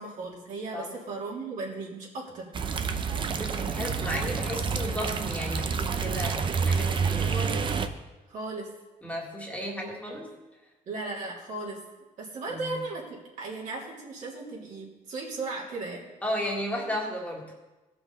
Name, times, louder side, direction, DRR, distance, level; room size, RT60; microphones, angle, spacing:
voice 1, 0.0-2.5 7.2-7.6 8.3-8.7 9.6-9.9 10.8-11.8 12.2-16.1, right 3 dB, 70° right, -5 dB, 3.2 m, -36 dB
sound 1, 2.5-7.9, right 5 dB, 35° right, 0.6 m, -28 dB
voice 2, 3.3-7.5 9.0-10.3 12.5-12.8 16.2-17.5, equal, 10° left, -2 dB, 1.8 m, -34 dB
17.5 x 5.9 x 4.2 m, 1.1 s
cardioid pair, 140°, 14 cm